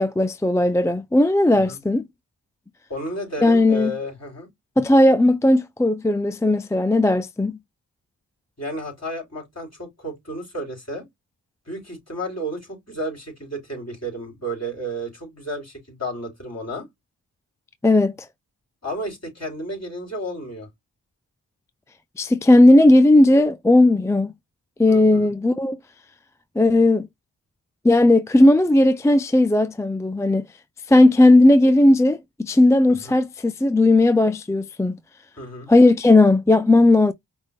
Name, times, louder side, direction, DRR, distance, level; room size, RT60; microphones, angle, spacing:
voice 1, 0.0-2.0 3.4-3.9 4.8-7.6 17.8-18.1 22.2-24.3 24.8-25.8 26.6-27.1 27.8-30.4 30.9-35.0 35.7-37.1, left 2 dB, 5° left, 0.3 m, -16 dB
voice 2, 2.9-4.5 8.6-11.1 11.7-16.9 18.8-20.7 24.9-25.3 32.9-33.2 35.4-35.7, right 1 dB, 35° left, 3.6 m, -32 dB
5.3 x 2.5 x 3.5 m
cardioid pair, 40°, 45 cm